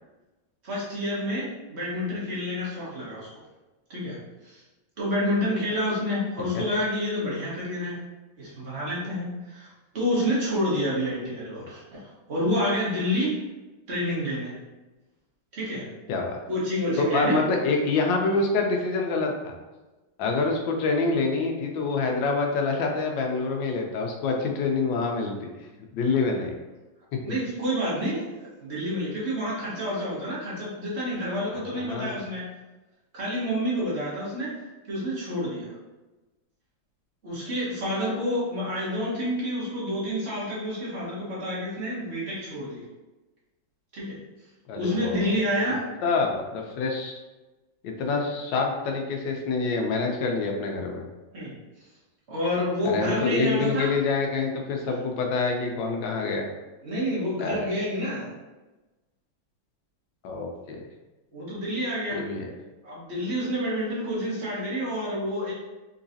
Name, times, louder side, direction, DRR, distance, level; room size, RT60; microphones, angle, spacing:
voice 1, 0.6-3.4 3.9-4.2 4.4-4.6 5.0-8.0 8.4-9.7 9.9-12.0 12.3-13.4 13.9-14.5 15.5-15.9 16.5-17.4 27.2-28.2 28.6-32.4 33.1-34.5 34.9-35.7 37.2-42.8 43.9-44.2 44.8-45.8 51.3-51.5 52.3-53.9 56.8-58.3 61.3-62.2 62.8-65.5, equal, 40° right, -7 dB, 1.3 m, -28 dB
voice 2, 16.1-16.4 17.0-19.5 20.2-25.5 25.9-26.5 27.1-27.2 31.5-32.2 44.7-45.4 46.0-47.1 47.8-51.0 52.8-56.5 57.4-57.7 60.2-60.8 62.1-62.5, left 4 dB, 75° left, 2 dB, 1.3 m, -26 dB
3.9 x 3.0 x 2.6 m, 1.1 s
omnidirectional pair, 2.1 m